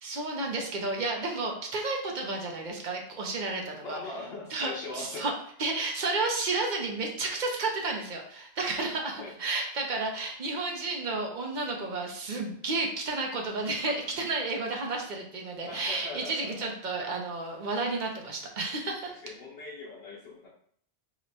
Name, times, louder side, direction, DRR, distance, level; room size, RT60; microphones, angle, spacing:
voice 1, 0.0-4.0 4.5-5.3 5.6-19.1, right 3 dB, 55° right, 1 dB, 0.7 m, -32 dB
voice 2, 3.8-5.2 9.1-9.4 15.7-16.7 19.1-20.5, left 3 dB, 80° left, -4 dB, 0.9 m, -41 dB
2.9 x 2.2 x 3.9 m, 0.62 s
omnidirectional pair, 1.0 m